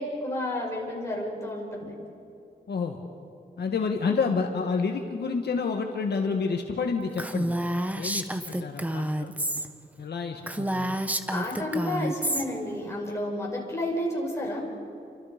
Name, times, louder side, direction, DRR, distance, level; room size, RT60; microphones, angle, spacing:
voice 1, 0.0-1.9 11.3-14.6, left 1 dB, 15° left, -3 dB, 6.4 m, -31 dB
voice 2, 2.7-3.0 3.6-7.6 7.9-9.3 10.0-11.0, left 5 dB, 70° left, 3 dB, 1.7 m, -29 dB
Female speech woman speaking, 7.2-9.7 10.0-10.1 10.4-12.4, right 1 dB, 10° right, 1.1 m, -29 dB
29.5 x 25.5 x 5.2 m, 2.7 s
wide cardioid pair, 130°, 18 cm